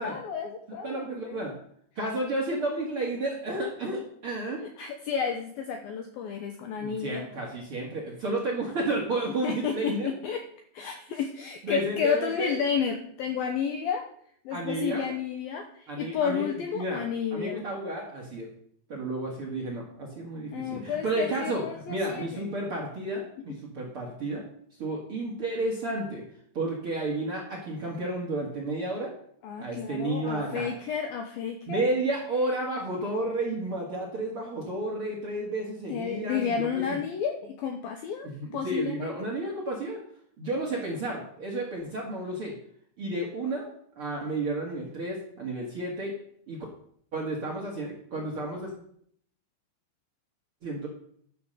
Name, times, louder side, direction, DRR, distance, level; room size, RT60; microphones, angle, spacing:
voice 1, 0.0-1.4 4.6-7.3 9.4-10.4 10.7-14.0 14.5-17.6 20.5-22.5 29.4-31.8 35.9-38.3 38.5-39.3, left 7 dB, 90° left, 5 dB, 2.1 m, -31 dB
voice 2, 0.8-1.5 1.9-4.6 6.8-10.1 11.6-12.5 14.5-15.1 15.9-17.0 17.3-18.5 18.9-24.4 24.8-26.2 26.5-29.1 29.6-30.7 31.7-36.8 38.2-40.0 40.4-42.5 43.0-43.7 44.0-46.1 46.5-46.6 47.1-48.7 50.6-50.9, right 2 dB, 55° right, -1 dB, 1.6 m, -32 dB
11.5 x 7.0 x 6.6 m, 0.65 s
omnidirectional pair, 5.5 m